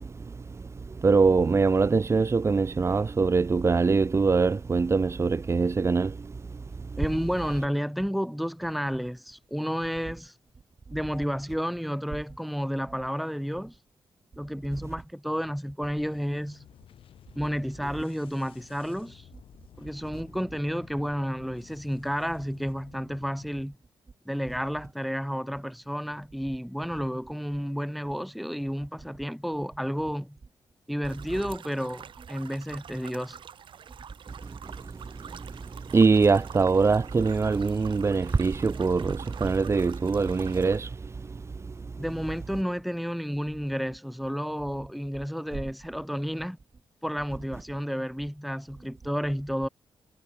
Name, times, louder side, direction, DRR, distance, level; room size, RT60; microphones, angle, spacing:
voice 1, 1.0-6.1 35.9-40.9, right 4 dB, 30° right, 1.2 m, -23 dB
voice 2, 7.0-10.3 10.9-13.8 14.4-16.7 17.4-19.3 19.8-23.8 24.3-30.4 30.9-33.4 42.0-46.6 47.0-49.7, equal, ahead, 5.4 m, -31 dB
sound 1, 16.0-23.7, left 10 dB, 80° left, 5.3 m, -53 dB
sound 2, 31.0-40.8, right 8 dB, 65° right, 3.8 m, -46 dB
cardioid pair, 105°, 9 cm